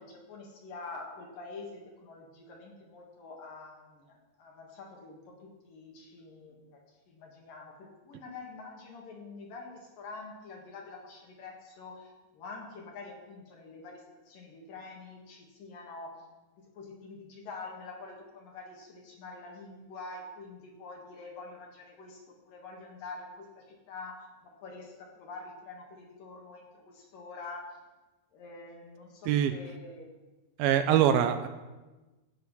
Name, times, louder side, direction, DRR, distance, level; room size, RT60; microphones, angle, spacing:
voice 1, 0.0-6.8 7.1-16.2 16.6-27.8 28.3-30.1, left 3 dB, 70° left, -1 dB, 3.3 m, -46 dB
voice 2, 30.6-31.5, right 10 dB, 85° right, 9 dB, 2.4 m, -23 dB
15.0 x 8.2 x 5.6 m, 1.2 s
omnidirectional pair, 4.3 m